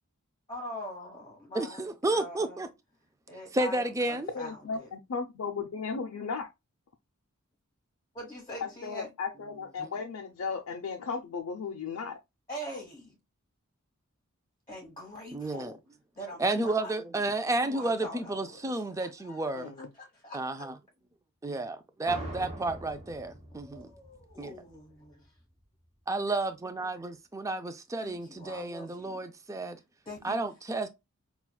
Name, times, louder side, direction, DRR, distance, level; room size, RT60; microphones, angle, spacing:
voice 1, 0.5-2.7 3.3-4.9 8.1-9.1 12.5-13.2 14.7-15.7 16.2-16.9 17.6-19.5 19.9-20.4 23.5-24.8 28.0-29.2 30.0-30.4, left 1 dB, 20° left, 1.1 m, -43 dB
voice 2, 1.5-2.7 3.5-4.3 9.8-9.9 15.3-15.7 16.4-19.7 20.3-20.7 21.4-23.9 24.4-24.5 26.1-29.8 30.2-30.9, right 2 dB, 15° right, 0.3 m, -31 dB
voice 3, 4.3-6.5 8.6-12.2 19.6-19.9, left 5 dB, 65° left, 0.5 m, -35 dB
sound 1, 22.0-25.3, right 1 dB, 30° right, 1.0 m, -43 dB
5.6 x 2.3 x 2.2 m
head